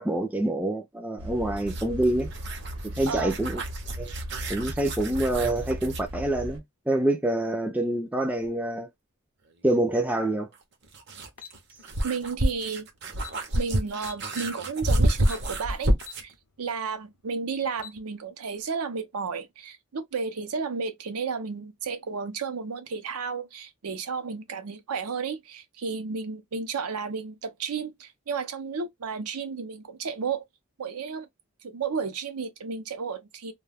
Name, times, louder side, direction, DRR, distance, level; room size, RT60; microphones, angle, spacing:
voice 1, 0.0-2.3 3.0-3.6 4.0-4.1 4.5-8.9 9.6-10.5, right 1 dB, 5° right, 0.3 m, -26 dB
sound 1, 1.2-6.6, equal, 70° right, 1.0 m, -37 dB
sound 2, 1.6-6.1 8.4-8.5 10.5-16.3, right 1 dB, 50° right, 0.6 m, -29 dB
sound 3, 11.4-11.6 12.8-12.9 13.1-13.4 14.0-14.6 15.3-15.5 16.0-16.2 16.7-16.8 17.6-18.0, left 8 dB, 85° left, 0.6 m, -43 dB
voice 2, 12.0-12.9 13.5-15.9 16.2-30.5 30.8-31.3 31.6-33.5, right 5 dB, 90° right, 0.6 m, -32 dB
2.2 x 2.2 x 3.3 m
head